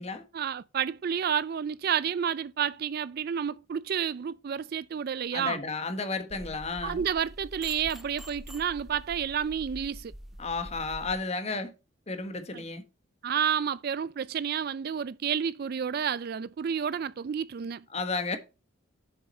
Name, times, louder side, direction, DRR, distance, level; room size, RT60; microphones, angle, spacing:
voice 1, 0.3-5.6 6.8-10.1 12.5-12.6 13.2-17.8, right 8 dB, 45° right, 0.3 m, -30 dB
voice 2, 5.3-7.0 10.4-11.7 12.1-12.8 17.9-18.4, left 3 dB, 30° left, 1.3 m, -32 dB
sound 1, 6.3-11.1, equal, ahead, 0.7 m, -44 dB
7.2 x 6.5 x 4.2 m
head